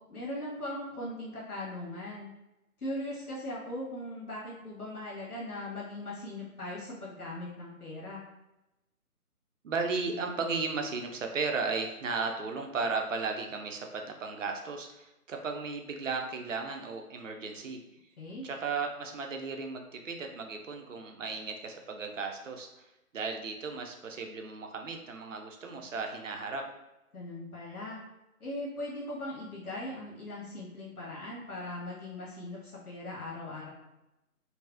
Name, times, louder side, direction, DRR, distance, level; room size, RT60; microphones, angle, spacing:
voice 1, 0.1-2.3 2.8-8.2 18.2-18.4 27.1-28.0 28.4-33.7, left 1 dB, 75° left, -6 dB, 1.3 m, -39 dB
voice 2, 9.6-17.8 18.4-26.7, right 4 dB, 60° right, 3 dB, 0.5 m, -35 dB
3.4 x 2.0 x 2.3 m, 0.96 s
figure-of-eight pair, 150°, 45 cm